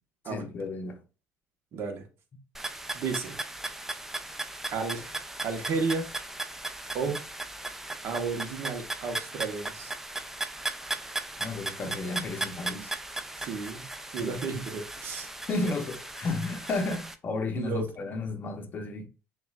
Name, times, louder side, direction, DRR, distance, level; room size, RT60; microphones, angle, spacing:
voice 1, 0.3-1.0 11.4-13.0 14.2-14.4 15.5-19.1, left 3 dB, 35° left, 0.7 m, -33 dB
voice 2, 1.7-2.0 2.9-3.3 4.7-6.0 6.9-7.2 8.0-9.9 13.4-13.8 14.1-15.3 17.6-17.9, right 4 dB, 55° right, 1.1 m, -32 dB
sound 1, 2.5-17.1, right 2 dB, 5° right, 0.4 m, -37 dB
6.8 x 2.4 x 2.3 m
cardioid pair, 125°, 5 cm